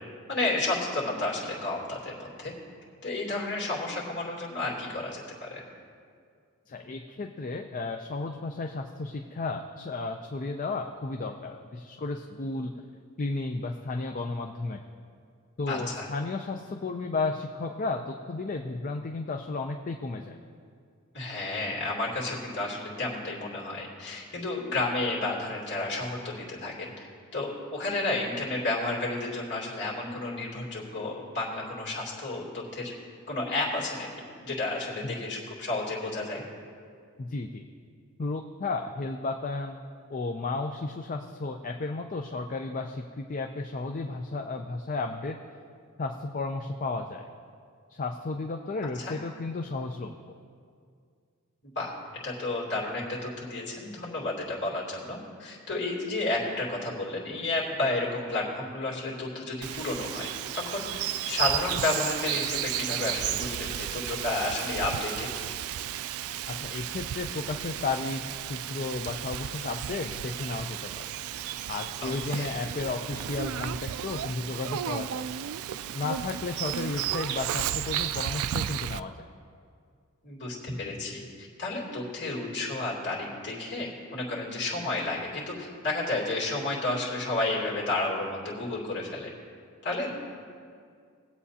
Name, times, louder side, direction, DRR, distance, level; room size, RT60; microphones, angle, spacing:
voice 1, 0.3-2.5 3.0-5.6 15.7-16.1 21.1-26.9 27.3-32.9 33.3-34.1 34.4-36.4 49.0-49.1 51.6-51.9 52.2-65.3 72.0-72.5 80.2-89.3 89.8-90.2, left 2 dB, 55° left, -4 dB, 2.9 m, -31 dB
voice 2, 6.7-12.7 13.2-14.8 15.6-20.4 35.0-35.1 37.2-37.6 38.2-39.8 40.1-45.4 46.0-47.3 47.9-50.4 66.5-68.2 68.5-71.1 71.7-75.3 75.9-79.1, left 3 dB, 40° left, 4 dB, 0.5 m, -33 dB
Bird vocalization bird call bird song, 59.6-79.0, right 11 dB, 70° right, 0.3 m, -33 dB
20.5 x 8.2 x 2.8 m, 2.2 s
head